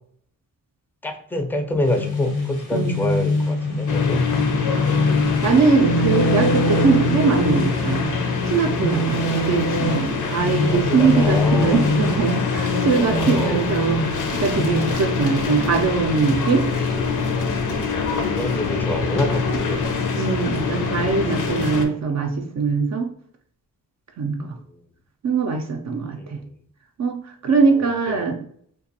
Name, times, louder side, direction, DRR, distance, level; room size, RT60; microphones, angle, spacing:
voice 1, 1.0-4.2 10.6-11.8 12.9-13.7 15.3-15.6 18.1-19.9 21.9-22.0 24.4-24.5 26.2-26.4 27.8-28.2, left 1 dB, 5° left, 4 dB, 0.4 m, -27 dB
sound 1, 1.8-14.9, left 1 dB, 85° left, 1.0 m, -24 dB
sound 2, 3.9-21.8, left 5 dB, 55° left, 0.6 m, -24 dB
voice 2, 4.7-8.1 8.4-16.7 20.2-23.1 24.2-24.6 25.2-26.4 27.0-28.4, right 5 dB, 50° right, 3 dB, 0.5 m, -22 dB
2.5 x 2.3 x 2.6 m, 0.63 s
cardioid pair, 45°, 37 cm